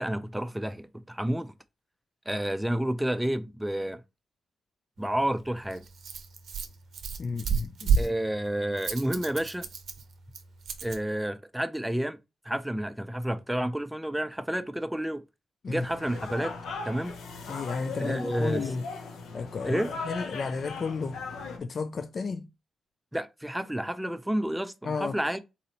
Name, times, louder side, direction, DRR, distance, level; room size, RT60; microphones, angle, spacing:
voice 1, 0.0-1.5 2.3-4.0 5.0-5.8 8.0-9.7 10.8-12.2 12.4-15.2 15.7-16.5 16.8-17.2 18.0-18.7 19.6-19.9 23.1-25.4, right 1 dB, 5° right, 0.5 m, -30 dB
Rattle, 5.0-11.0, right 6 dB, 70° right, 0.6 m, -32 dB
voice 2, 7.2-8.0 15.6-15.9 17.5-18.8 19.3-21.2 21.6-22.5 24.8-25.2, left 4 dB, 50° left, 0.4 m, -33 dB
sound 1, 15.8-21.6, left 4 dB, 80° left, 0.9 m, -38 dB
4.1 x 2.7 x 4.1 m
cardioid pair, 65°, 0 cm